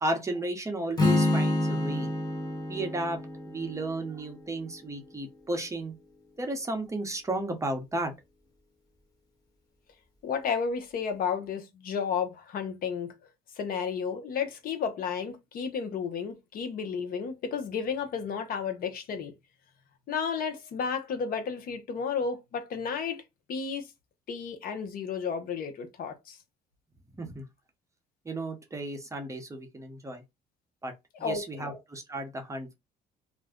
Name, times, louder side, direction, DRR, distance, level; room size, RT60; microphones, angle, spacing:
voice 1, 0.0-2.1 2.7-3.2 3.5-5.9 6.4-8.1 27.2-27.4 28.2-30.2 30.8-30.9 31.2-32.7, right 2 dB, 20° right, 0.7 m, -33 dB
Strum, 1.0-5.1, left 1 dB, 20° left, 1.2 m, -29 dB
voice 2, 10.2-13.1 13.6-19.3 20.1-23.2 23.5-23.9 24.3-26.4 31.2-31.8, left 6 dB, 60° left, 0.7 m, -32 dB
2.5 x 2.1 x 3.5 m
cardioid pair, 110°, 17 cm